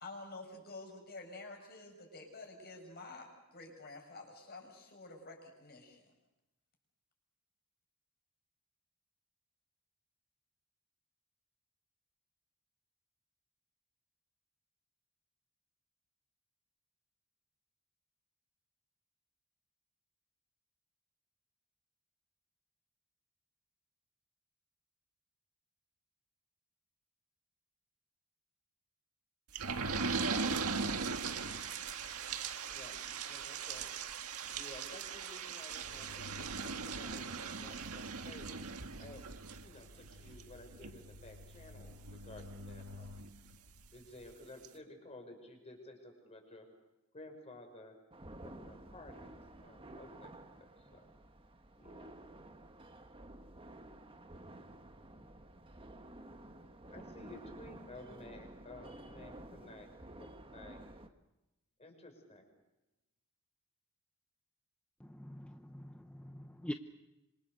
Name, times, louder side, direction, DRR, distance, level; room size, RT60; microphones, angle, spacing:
voice 1, 0.0-6.1, left 2 dB, 45° left, 2 dB, 7.2 m, -50 dB
sound 1, 29.5-43.8 44.3-44.4 44.6-44.7, right 4 dB, 80° right, 1.8 m, -40 dB
voice 2, 32.7-33.9 34.5-38.5 39.0-39.2 39.6-43.2 43.9-46.7 47.1-48.0 48.4-51.1 51.8-52.1 56.9-59.9 60.2-60.8 61.8-62.5, left 1 dB, 30° left, 4 dB, 5.7 m, -54 dB
sound 2, 48.1-61.1, right 1 dB, 25° right, 1.5 m, -52 dB
voice 3, 65.0-66.7, equal, 5° left, 5 dB, 0.9 m, -45 dB
26.5 x 26.0 x 6.9 m, 0.95 s
head